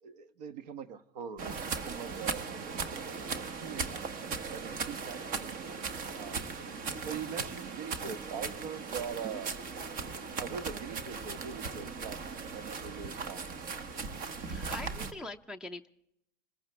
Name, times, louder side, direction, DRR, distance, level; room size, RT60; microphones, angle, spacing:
voice 1, 0.0-4.0 4.5-5.7 6.1-6.5 7.0-9.6 10.4-13.5, right 7 dB, 75° right, 1.2 m, -43 dB
sound 1, 1.4-15.1, right 5 dB, 40° right, 1.4 m, -38 dB
voice 2, 14.5-15.9, left 2 dB, 5° right, 0.5 m, -43 dB
27.0 x 14.5 x 3.3 m
supercardioid pair, 120°, 21 cm